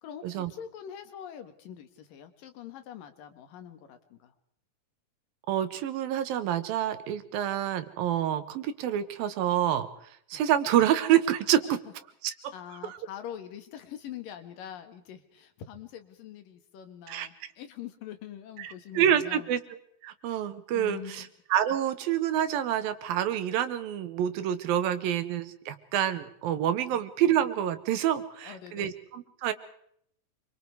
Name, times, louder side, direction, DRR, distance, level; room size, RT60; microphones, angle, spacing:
voice 1, 0.0-4.3 10.3-10.4 12.5-19.5 20.7-21.3 26.9-27.0 28.4-28.9, left 10 dB, 75° left, 9 dB, 3.3 m, -44 dB
voice 2, 5.5-9.9 10.3-11.8 12.2-12.5 12.8-13.0 17.1-17.3 18.6-19.6 20.0-29.5, right 10 dB, 85° right, 11 dB, 3.1 m, -27 dB
26.5 x 24.5 x 4.8 m, 0.68 s
omnidirectional pair, 4.0 m